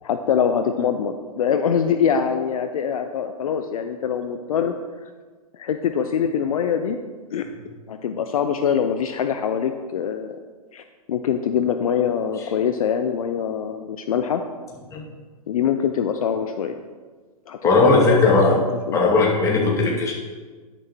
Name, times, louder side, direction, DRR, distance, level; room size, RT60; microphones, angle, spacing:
voice 1, 0.0-4.7 5.0-5.1 5.5-7.0 7.3-7.5 7.9-10.3 10.7-10.8 11.1-14.4 15.5-16.8 17.5-19.2 19.7-19.9, left 7 dB, 60° left, 8 dB, 0.6 m, -24 dB
voice 2, 17.6-18.5 18.9-20.1, left 3 dB, 15° left, -4 dB, 2.3 m, -17 dB
10.5 x 6.8 x 3.0 m, 1.4 s
figure-of-eight pair, 110°, 20 cm